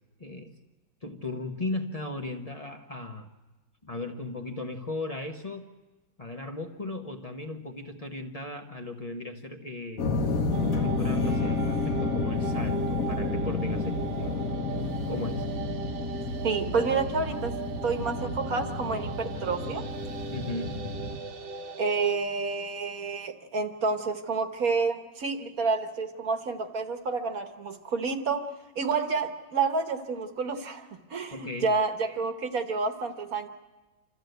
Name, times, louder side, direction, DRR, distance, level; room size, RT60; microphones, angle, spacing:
voice 1, 0.2-0.5 1.0-3.3 3.8-5.7 6.2-10.1 10.7-14.4 15.1-15.5 20.3-20.8 31.3-31.7, left 2 dB, 25° left, 4 dB, 0.9 m, -36 dB
sound 1, 10.0-21.2, left 3 dB, 50° left, 1.5 m, -30 dB
sound 2, 10.5-22.2, right 7 dB, 70° right, 1.9 m, -38 dB
voice 2, 16.4-17.6 17.8-19.8 21.8-33.5, right 4 dB, 50° right, 6 dB, 1.6 m, -29 dB
27.5 x 14.0 x 7.9 m, 1.2 s
omnidirectional pair, 2.1 m